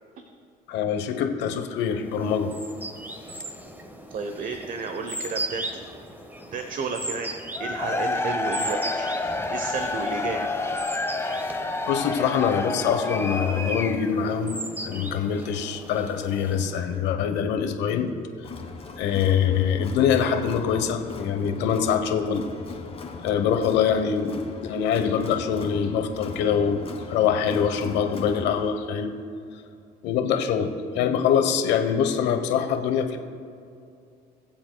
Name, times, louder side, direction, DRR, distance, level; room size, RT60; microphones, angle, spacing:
voice 1, 0.7-2.5 11.9-18.1 19.0-22.5 23.2-29.1 30.0-33.2, left 7 dB, 80° left, 6 dB, 1.0 m, -24 dB
sound 1, 2.0-16.9, right 1 dB, 10° right, 1.3 m, -38 dB
voice 2, 4.1-5.9 6.5-7.3 7.6-10.5, right 4 dB, 50° right, 6 dB, 0.9 m, -32 dB
Cheering / Crowd, 7.5-14.3, left 2 dB, 15° left, 0.9 m, -29 dB
Crowd, 18.4-28.7, left 4 dB, 35° left, 1.5 m, -39 dB
21.5 x 7.6 x 2.3 m, 2.4 s
supercardioid pair, 85°, 18 cm